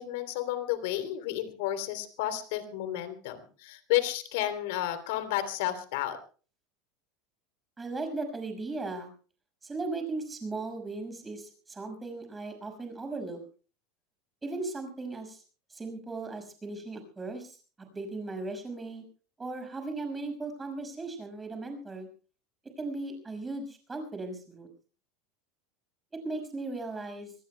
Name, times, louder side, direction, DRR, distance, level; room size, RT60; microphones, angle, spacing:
voice 1, 0.0-6.2, left 13 dB, 70° left, 11 dB, 3.2 m, -31 dB
voice 2, 7.8-9.1 9.6-13.4 14.4-15.4 15.7-17.6 17.9-19.0 19.4-22.1 22.8-24.7 26.1-27.3, right 3 dB, 10° right, 6 dB, 5.8 m, -37 dB
26.5 x 19.5 x 2.3 m, 0.38 s
supercardioid pair, 155°, 0 cm